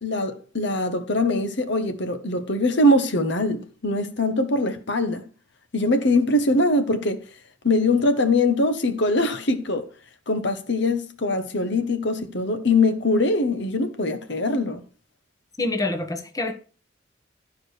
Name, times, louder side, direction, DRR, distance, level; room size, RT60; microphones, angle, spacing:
voice 1, 0.0-5.2 5.7-7.2 7.6-9.8 10.3-14.8, left 2 dB, 60° left, 1.2 m, -22 dB
voice 2, 15.6-16.5, left 2 dB, 20° left, 1.1 m, -26 dB
12.0 x 4.9 x 6.4 m
head